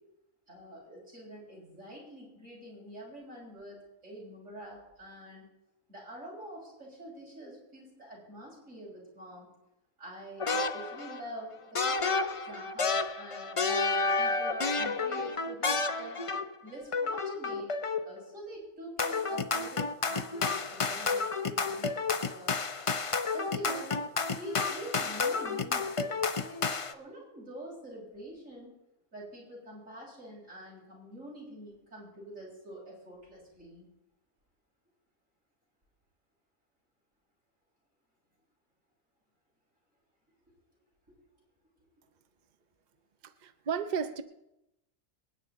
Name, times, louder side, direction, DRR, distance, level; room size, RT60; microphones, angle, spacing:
voice 1, 0.5-5.5 5.9-9.5 10.0-16.2 16.6-17.7 18.0-22.6 23.3-24.0 24.3-28.7 29.1-33.9 41.1-41.2, equal, 70° right, -3 dB, 6.4 m, -46 dB
sound 1, 10.4-11.2 11.7-16.6 16.9-18.2 19.0-26.9, left 4 dB, 35° left, 0.5 m, -31 dB
voice 2, 43.2-44.2, right 7 dB, 45° right, 10 dB, 0.7 m, -33 dB
26.0 x 9.8 x 4.1 m, 0.91 s
omnidirectional pair, 1.4 m